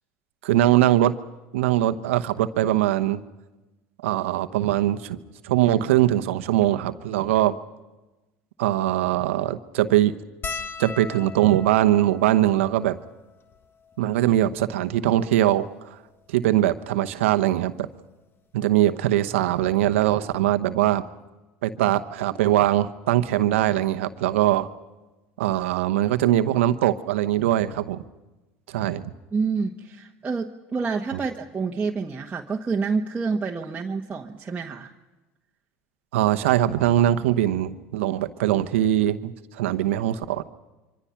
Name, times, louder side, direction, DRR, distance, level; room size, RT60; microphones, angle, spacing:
voice 1, 0.4-1.1 1.5-3.2 4.0-5.2 5.4-7.5 8.6-10.1 10.8-13.0 14.0-15.9 16.3-17.9 18.5-21.0 21.6-24.7 25.4-28.0 28.7-29.1 36.1-40.4, right 13 dB, 80° right, 9 dB, 1.0 m, -21 dB
sound 1, 10.4-15.0 15.8-15.9 16.1-16.3 17.5-17.8 19.2-19.3 19.5-19.7, left 5 dB, 35° left, 1.3 m, -39 dB
voice 2, 29.3-34.9, right 4 dB, 20° right, -1 dB, 1.4 m, -28 dB
26.0 x 25.0 x 5.9 m, 1.1 s
hypercardioid pair, 85°, 7 cm